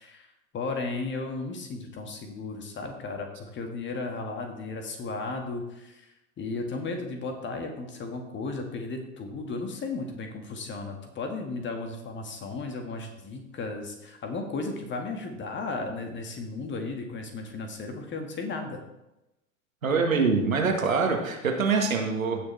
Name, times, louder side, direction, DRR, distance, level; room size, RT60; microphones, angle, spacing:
voice 1, 0.0-18.8, left 3 dB, 30° left, 4 dB, 1.9 m, -35 dB
voice 2, 19.8-22.5, right 4 dB, 80° right, 2 dB, 1.8 m, -25 dB
16.5 x 6.7 x 3.4 m, 0.94 s
figure-of-eight pair, 80°, 40 cm